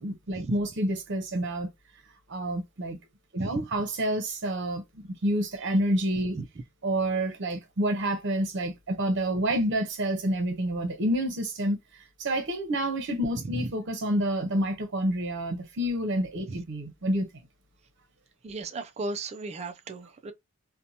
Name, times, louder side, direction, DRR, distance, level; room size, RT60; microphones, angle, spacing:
voice 1, 0.0-1.7 2.3-3.0 3.3-4.8 5.1-6.3 6.8-11.8 12.2-17.3, right 1 dB, 60° right, 0.7 m, -28 dB
voice 2, 18.4-20.3, right 3 dB, 30° right, 0.3 m, -35 dB
2.6 x 2.1 x 2.7 m
head